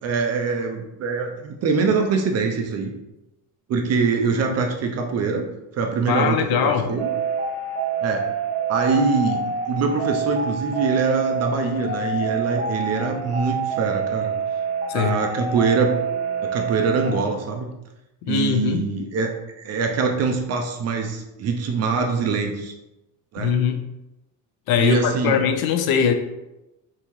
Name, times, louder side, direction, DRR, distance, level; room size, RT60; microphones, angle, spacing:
voice 1, 0.0-2.9 3.7-5.5 5.8-7.1 8.0-8.3 8.7-14.3 14.9-15.9 16.4-17.7 18.3-19.3 19.6-22.7 23.3-23.5 24.8-25.4, right 4 dB, 35° right, 3 dB, 0.4 m, -23 dB
voice 2, 6.1-6.9 14.9-15.2 18.3-18.8 23.4-23.8 24.7-26.1, left 7 dB, 55° left, 7 dB, 0.5 m, -21 dB
sound 1, 7.0-17.1, right 5 dB, 15° right, 0.8 m, -27 dB
5.6 x 2.8 x 3.0 m, 0.95 s
cardioid pair, 165°, 45 cm